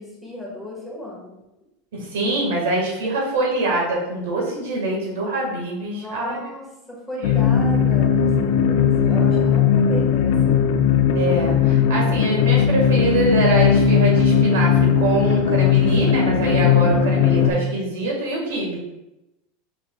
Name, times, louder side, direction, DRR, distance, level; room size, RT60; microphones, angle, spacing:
voice 1, 0.0-1.3 5.9-10.5, left 1 dB, ahead, -5 dB, 1.5 m, -35 dB
voice 2, 1.9-6.4 7.2-7.3 11.1-18.8, right 2 dB, 85° right, -2 dB, 1.6 m, -24 dB
sound 1, 7.2-17.5, left 7 dB, 65° left, 0.4 m, -18 dB
4.7 x 4.6 x 2.3 m, 0.93 s
supercardioid pair, 130°, 0 cm